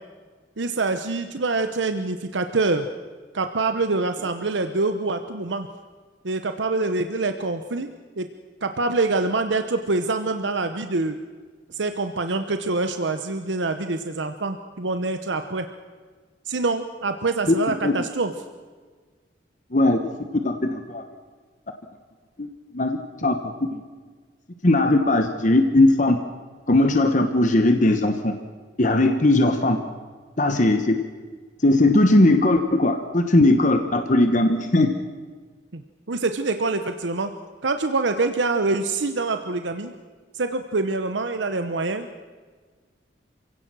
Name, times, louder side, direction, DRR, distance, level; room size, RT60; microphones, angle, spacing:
voice 1, 0.6-2.9 3.3-5.7 6.2-7.9 8.2-8.3 8.6-11.2 11.7-15.7 16.5-18.3 35.7-35.8 36.1-37.3 37.6-39.9 40.3-42.1, right 3 dB, 90° right, 8 dB, 0.9 m, -25 dB
voice 2, 20.4-21.0 22.4-22.5 22.7-23.4 23.7-23.8 24.6-26.2 26.7-28.3 28.8-29.8 30.4-31.0 31.6-34.9, left 2 dB, 45° left, 6 dB, 1.1 m, -19 dB
28.0 x 17.0 x 6.2 m, 1.5 s
head